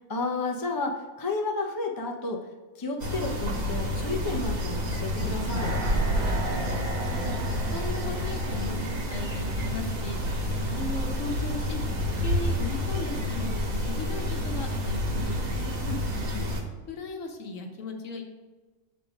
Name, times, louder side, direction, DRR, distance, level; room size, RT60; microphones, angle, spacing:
voice 1, 0.1-2.5 2.8-5.7 15.8-16.5, left 3 dB, 30° left, 1 dB, 0.4 m, -32 dB
sound 1, 3.0-16.6, equal, 70° right, 1.5 m, -29 dB
sound 2, 5.2-10.4 10.7-10.8, right 1 dB, 90° right, 1.7 m, -35 dB
voice 2, 6.5-7.3 7.7-8.8 9.1-11.8 12.2-15.7 16.9-18.2, left 3 dB, 65° left, 3 dB, 1.3 m, -37 dB
6.6 x 3.9 x 5.0 m, 1.2 s
omnidirectional pair, 1.5 m